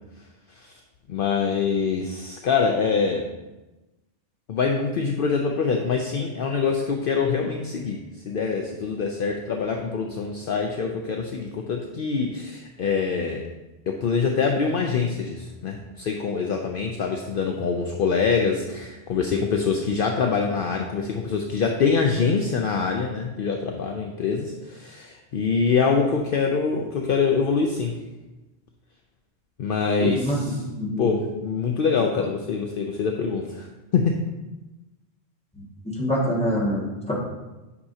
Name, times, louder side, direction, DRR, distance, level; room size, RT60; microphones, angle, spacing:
voice 1, 1.1-3.3 4.5-13.5 13.9-27.9 29.6-30.6 31.0-33.7 33.9-34.2, left 5 dB, 60° left, 3 dB, 0.7 m, -24 dB
voice 2, 30.0-31.1 35.6-37.1, equal, 5° left, -6 dB, 1.7 m, -26 dB
9.6 x 5.8 x 2.8 m, 1.1 s
omnidirectional pair, 1.1 m